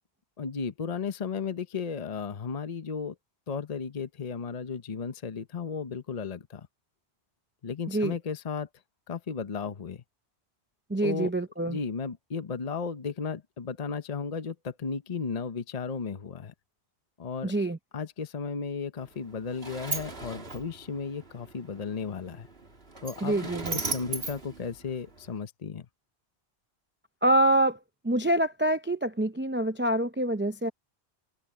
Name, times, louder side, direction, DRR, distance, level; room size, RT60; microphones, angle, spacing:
voice 1, 0.4-3.1 3.5-6.7 7.6-8.7 9.1-10.0 11.0-11.3 11.7-16.5 17.2-17.5 17.9-22.5 23.0-25.9, left 5 dB, 40° left, 0.9 m, -34 dB
voice 2, 10.9-11.8 17.4-17.8 23.2-23.8 27.2-27.8 28.0-30.7, right 1 dB, 15° right, 0.5 m, -26 dB
Sliding door, 19.0-25.4, right 3 dB, 60° right, 2.7 m, -38 dB
omnidirectional pair, 1.1 m